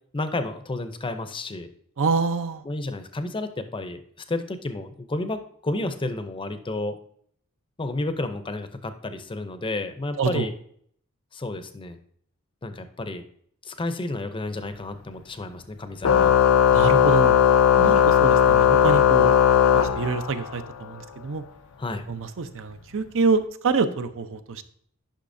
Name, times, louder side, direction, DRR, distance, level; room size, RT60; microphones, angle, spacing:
voice 1, 0.1-1.7 2.6-4.0 4.3-7.0 7.8-10.5 11.3-12.0 12.6-13.2 13.6-16.3 21.8-22.1, left 2 dB, 25° left, 9 dB, 0.6 m, -31 dB
voice 2, 2.0-2.6 10.2-10.5 16.7-17.3 17.8-19.3 19.7-21.4 22.1-24.6, right 4 dB, 65° right, 10 dB, 0.6 m, -26 dB
Organ, 16.0-20.6, left 8 dB, 85° left, 0.5 m, -17 dB
10.0 x 5.6 x 2.6 m, 0.63 s
head